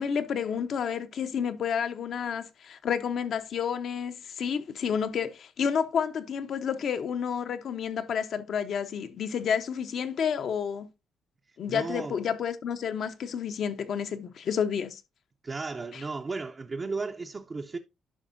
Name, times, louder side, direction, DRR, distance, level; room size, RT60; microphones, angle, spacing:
voice 1, 0.0-10.9 11.6-15.0 15.9-16.0, left 7 dB, 65° left, 0.8 m, -30 dB
voice 2, 11.7-12.2 15.4-17.8, right 3 dB, 35° right, 0.6 m, -34 dB
11.0 x 5.4 x 2.6 m
cardioid pair, 90°, 0 cm